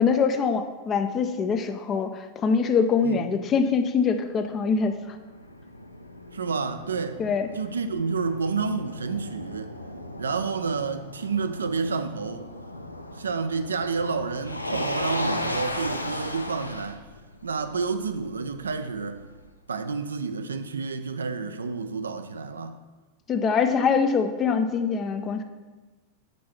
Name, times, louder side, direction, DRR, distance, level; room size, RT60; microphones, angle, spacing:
voice 1, 0.0-5.2 7.2-7.5 23.3-25.4, left 5 dB, 25° left, 0.5 m, -24 dB
Motor vehicle (road), 4.4-19.5, left 1 dB, 85° left, 0.4 m, -36 dB
voice 2, 6.3-7.2 7.5-9.7 10.2-12.5 13.2-17.0 17.4-19.2 19.7-22.8, right 4 dB, 70° right, 0.4 m, -29 dB
5.3 x 4.3 x 5.8 m
figure-of-eight pair, 90°, 0 cm